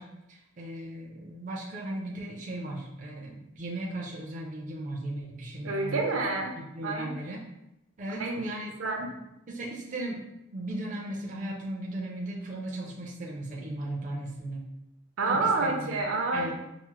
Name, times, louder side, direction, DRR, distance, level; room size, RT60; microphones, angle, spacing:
voice 1, 0.0-6.0 6.7-7.4 8.0-8.7 9.0-9.2 9.5-14.7 15.3-16.0 16.3-16.5, right 1 dB, 40° right, -2 dB, 0.4 m, -37 dB
voice 2, 5.6-6.6 6.8-7.2 8.2-8.4 8.8-9.1 15.2-16.5, right 3 dB, 80° right, 2 dB, 0.6 m, -28 dB
4.6 x 2.0 x 3.0 m, 0.86 s
head